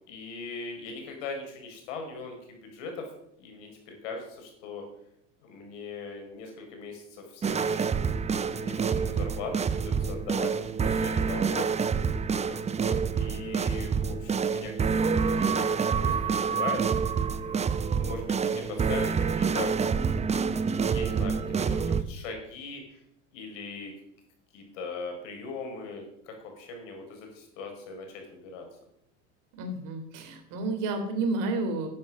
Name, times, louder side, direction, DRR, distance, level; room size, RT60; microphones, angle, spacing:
voice 1, 0.1-3.0 3.4-4.8 5.4-8.0 8.3-11.7 12.4-16.8 17.4-19.7 20.5-23.0 23.3-23.9 24.5-28.6, left 4 dB, 75° left, 3 dB, 4.7 m, -40 dB
sound 1, 7.4-22.0, right 6 dB, 15° right, 0.7 m, -27 dB
voice 2, 29.6-31.9, right 2 dB, 55° right, 6 dB, 3.5 m, -30 dB
11.0 x 9.5 x 6.1 m, 0.77 s
hypercardioid pair, 100°, 38 cm